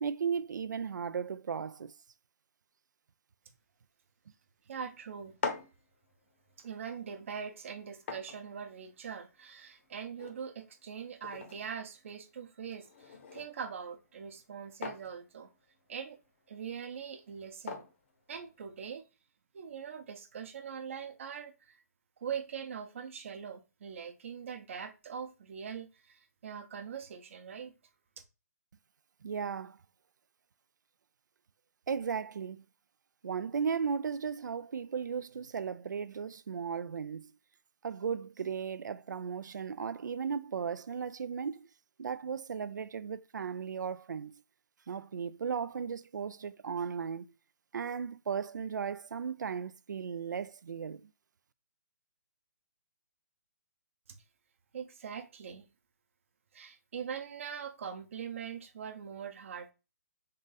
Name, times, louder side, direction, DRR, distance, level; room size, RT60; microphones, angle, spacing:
voice 1, 0.0-1.9 29.2-29.8 31.9-32.6 33.2-37.3 37.8-41.7 42.0-44.3 44.9-47.3 47.7-51.1, right 6 dB, 85° right, 0.4 m, -36 dB
voice 2, 4.7-5.4 6.6-15.5 15.9-16.2 16.5-17.9 18.3-19.0 19.5-21.8 22.2-27.7 54.7-55.6 56.5-59.7, right 7 dB, 45° right, 0.7 m, -42 dB
sound 1, 5.1-19.0, left 5 dB, 40° left, 0.7 m, -46 dB
3.7 x 2.6 x 3.9 m
hypercardioid pair, 165°, 10 cm